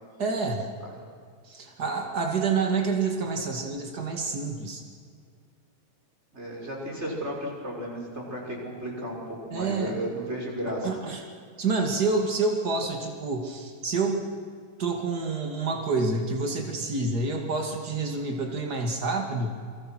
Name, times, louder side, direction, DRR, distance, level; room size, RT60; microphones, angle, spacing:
voice 1, 0.2-0.7 1.4-4.8 9.5-9.9 10.8-11.2 11.6-14.3 14.8-19.5, right 4 dB, 85° right, 2 dB, 0.8 m, -28 dB
voice 2, 6.3-10.9, equal, 10° right, -2 dB, 5.9 m, -34 dB
29.0 x 23.5 x 6.4 m, 2.1 s
omnidirectional pair, 6.0 m